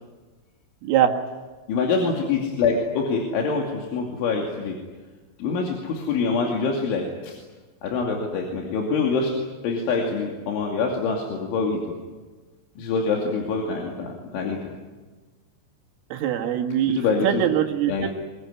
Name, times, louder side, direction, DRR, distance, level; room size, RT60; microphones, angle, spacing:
voice 1, 0.8-1.1 16.1-18.1, right 10 dB, 85° right, 2 dB, 4.4 m, -23 dB
voice 2, 1.7-4.8 5.4-7.4 7.8-9.3 9.6-11.8 12.8-14.7 16.9-17.5 17.9-18.1, left 4 dB, 75° left, 0 dB, 4.9 m, -25 dB
24.5 x 21.5 x 9.7 m, 1.3 s
omnidirectional pair, 5.7 m